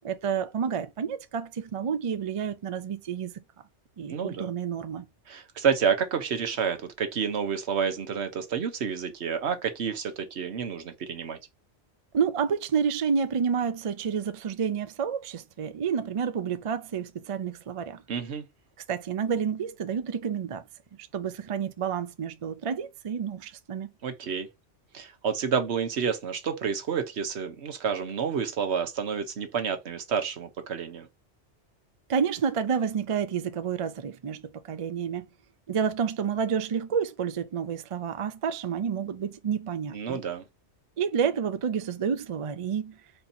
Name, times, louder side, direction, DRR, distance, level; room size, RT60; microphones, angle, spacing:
voice 1, 0.0-3.4 4.0-5.1 12.1-18.0 18.9-20.6 20.9-23.9 32.1-35.3 35.7-40.2 41.0-43.0, right 7 dB, 50° right, 0.4 m, -29 dB
voice 2, 4.1-4.5 5.3-11.4 18.1-18.4 24.0-24.5 24.9-31.1 39.9-40.5, right 6 dB, 70° right, 1.2 m, -29 dB
4.4 x 2.8 x 4.1 m
omnidirectional pair, 1.2 m